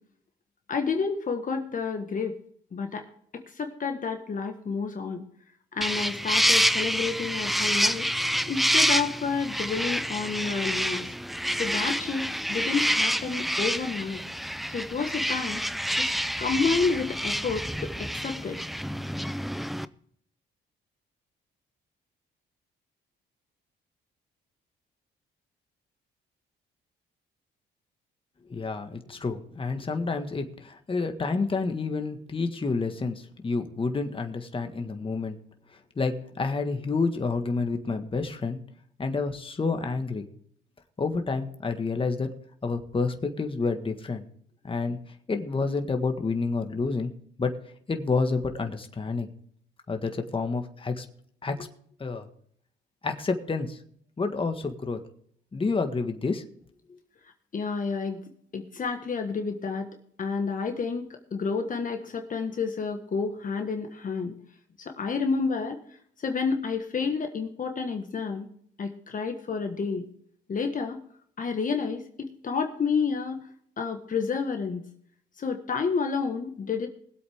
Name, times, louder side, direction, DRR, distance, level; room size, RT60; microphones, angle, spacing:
voice 1, 0.7-2.4 2.7-3.0 3.3-5.2 5.7-8.1 8.5-11.1 11.6-14.2 14.7-15.6 16.0-18.6 57.5-58.2 58.5-59.9 60.2-64.3 64.8-65.8 66.2-68.5 68.8-70.1 70.5-71.0 71.4-73.4 73.8-74.8 75.4-76.9, left 5 dB, 40° left, 5 dB, 1.5 m, -30 dB
sound 1, 5.8-19.8, equal, ahead, 0.5 m, -28 dB
voice 2, 28.5-35.4 36.0-38.6 39.0-40.3 41.0-42.3 42.6-44.2 44.6-45.0 45.3-47.1 47.4-47.6 47.9-49.3 49.9-51.0 51.4-51.7 52.0-52.3 53.0-53.8 54.2-55.0 55.5-56.4, left 4 dB, 25° left, 5 dB, 1.6 m, -29 dB
20.5 x 8.1 x 3.6 m, 0.63 s
cardioid pair, 90°, 20 cm